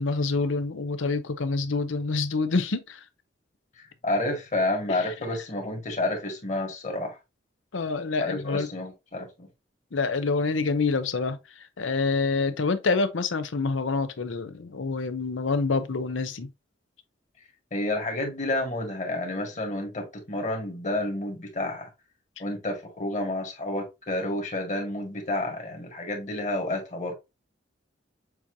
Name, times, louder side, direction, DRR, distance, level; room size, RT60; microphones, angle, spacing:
voice 1, 0.0-3.0 4.9-5.1 7.7-8.7 9.9-16.5, left 4 dB, 85° left, 0.7 m, -27 dB
voice 2, 3.8-7.2 8.2-9.5 17.7-21.9 22.4-27.1, left 1 dB, 40° left, 1.7 m, -30 dB
6.9 x 2.8 x 2.6 m
head